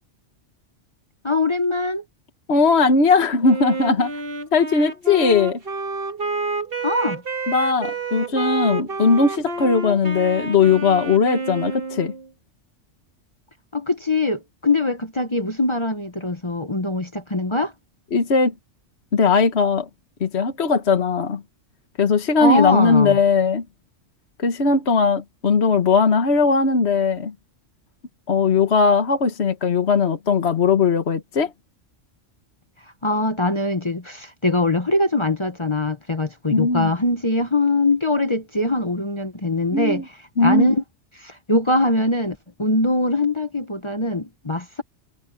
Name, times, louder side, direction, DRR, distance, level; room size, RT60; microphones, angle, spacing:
voice 1, 1.2-2.0 6.8-7.2 13.7-17.7 22.4-23.2 33.0-40.8 41.2-44.8, left 2 dB, 25° left, 1.1 m, -22 dB
voice 2, 2.5-4.1 4.5-5.6 7.5-12.1 18.1-18.5 19.1-19.9 20.2-21.4 22.0-23.6 24.4-27.3 28.3-31.5 36.5-36.9 39.7-40.0 40.4-40.7, left 4 dB, 60° left, 1.6 m, -18 dB
Wind instrument woodwind instrument, 3.4-12.3, right 3 dB, 50° right, 2.0 m, -29 dB
omnidirectional pair, 1.3 m